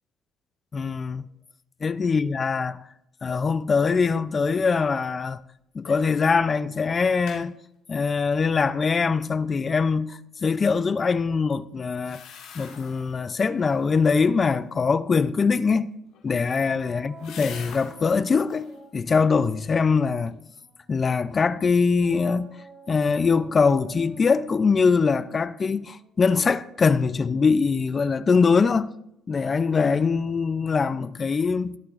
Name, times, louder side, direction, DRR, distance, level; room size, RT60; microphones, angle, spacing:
voice 1, 0.7-1.2 1.8-2.8 3.2-5.4 5.7-7.6 7.9-12.2 12.6-15.9 16.2-20.4 20.9-22.6 22.9-28.9 29.3-31.8, left 5 dB, 25° left, 0.3 m, -22 dB
sound 1, 5.8-6.2 6.5-6.6 6.9-7.4 11.9-13.1 13.5-14.0 16.0-18.0 18.4-18.8 19.3-19.9 20.3-20.4, left 7 dB, 90° left, 2.8 m, -45 dB
sound 2, 16.5-21.1 22.0-26.7, right 4 dB, 25° right, 1.3 m, -50 dB
21.5 x 8.7 x 2.4 m
cardioid pair, 155°, 0 cm